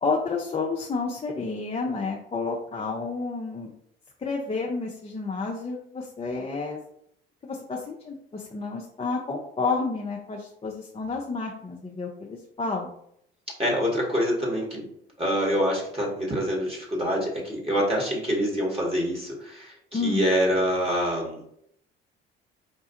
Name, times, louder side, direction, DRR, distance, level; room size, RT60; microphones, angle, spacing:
voice 1, 0.0-3.7 4.2-6.8 7.4-12.9 19.9-20.3, left 4 dB, 20° left, -1 dB, 0.6 m, -30 dB
voice 2, 13.6-14.9 15.2-21.4, equal, 20° right, -4 dB, 1.4 m, -26 dB
4.9 x 2.3 x 2.9 m, 0.72 s
hypercardioid pair, 55°, 30 cm